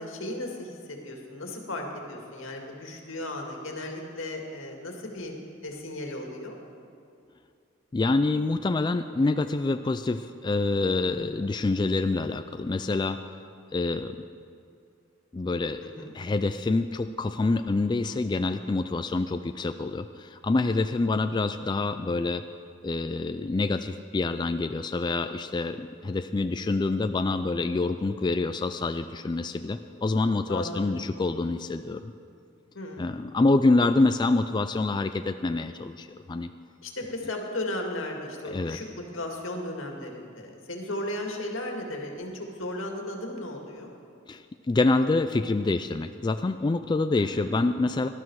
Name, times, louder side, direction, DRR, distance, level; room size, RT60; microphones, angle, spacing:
voice 1, 0.0-5.3 5.6-6.6 15.8-16.1 30.5-31.0 32.7-33.2 36.8-43.9 47.2-47.6, left 1 dB, 80° left, 1 dB, 2.1 m, -35 dB
voice 2, 7.9-13.2 13.7-14.2 15.3-15.8 16.1-22.4 22.8-32.1 33.0-36.5 38.5-38.8 44.3-48.1, left 3 dB, 20° left, 8 dB, 0.3 m, -26 dB
18.5 x 12.0 x 4.7 m, 2.5 s
head